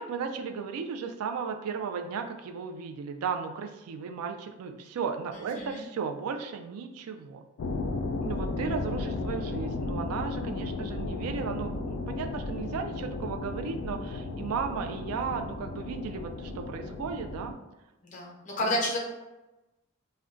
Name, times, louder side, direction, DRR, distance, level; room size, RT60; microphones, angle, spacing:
voice 1, 0.0-7.4 8.2-17.6 18.6-18.8, right 6 dB, 80° right, 6 dB, 0.3 m, -35 dB
voice 2, 5.3-5.9 18.0-19.0, left 1 dB, 35° left, -2 dB, 0.7 m, -31 dB
sound 1, 7.6-17.5, left 3 dB, 70° left, 0.3 m, -34 dB
2.4 x 2.1 x 3.7 m, 1.0 s
head